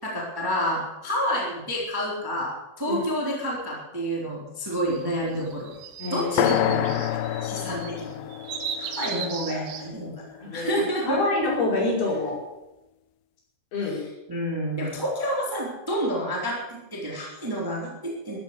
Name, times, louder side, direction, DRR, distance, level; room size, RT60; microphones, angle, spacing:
voice 1, 0.0-5.7 6.1-8.3 8.8-11.2 13.8-18.4, equal, 5° right, -3 dB, 2.8 m, -29 dB
sound 1, 4.7-9.9, right 7 dB, 85° right, 4.0 m, -37 dB
voice 2, 6.0-6.8 9.5-9.6 10.4-12.4 13.7-14.0, left 2 dB, 55° left, -4 dB, 7.5 m, -27 dB
sound 2, 6.4-10.3, left 12 dB, 80° left, 2.8 m, -28 dB
14.0 x 11.0 x 8.2 m, 0.96 s
omnidirectional pair, 5.3 m